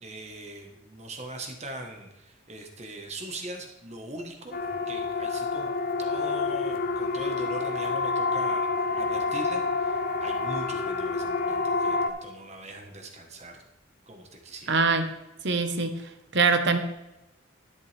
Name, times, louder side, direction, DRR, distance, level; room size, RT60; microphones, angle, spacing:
voice 1, 0.0-5.7 6.0-13.6 14.1-14.8, right 1 dB, 35° right, 3 dB, 1.3 m, -41 dB
Siren, 4.5-12.1, left 4 dB, 45° left, 0.8 m, -28 dB
voice 2, 14.7-15.1 15.4-16.0 16.3-16.8, right 4 dB, 60° right, 7 dB, 1.1 m, -23 dB
11.0 x 10.0 x 3.4 m, 0.96 s
head